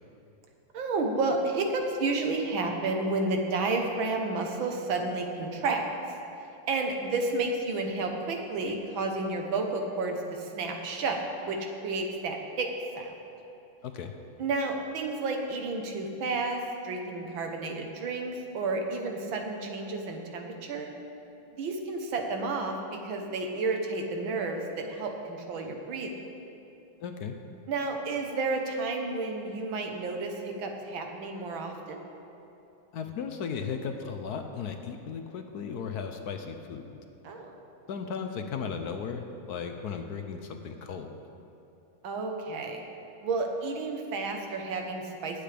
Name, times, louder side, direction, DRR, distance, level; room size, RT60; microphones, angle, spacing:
voice 1, 0.7-5.8 6.7-11.6 11.8-12.7 13.0-13.1 14.4-20.9 21.6-26.1 27.7-32.0 37.2-37.5 42.0-42.8 43.2-45.4, right 3 dB, 85° right, 3 dB, 1.9 m, -31 dB
voice 2, 13.8-14.1 27.0-27.3 32.9-36.9 37.9-41.2, left 6 dB, 65° left, 6 dB, 1.1 m, -36 dB
20.5 x 8.4 x 3.4 m, 2.9 s
omnidirectional pair, 2.1 m